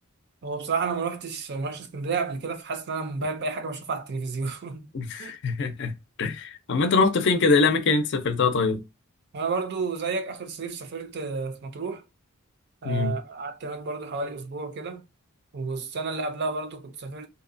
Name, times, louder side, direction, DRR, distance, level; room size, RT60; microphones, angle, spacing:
voice 1, 0.4-4.9 5.2-5.3 9.3-12.0 12.8-15.0 15.5-17.3, right 4 dB, 50° right, 0.5 m, -31 dB
voice 2, 4.9-5.9 6.2-8.8 12.8-13.2, left 4 dB, 55° left, 0.5 m, -23 dB
2.7 x 2.1 x 2.5 m
head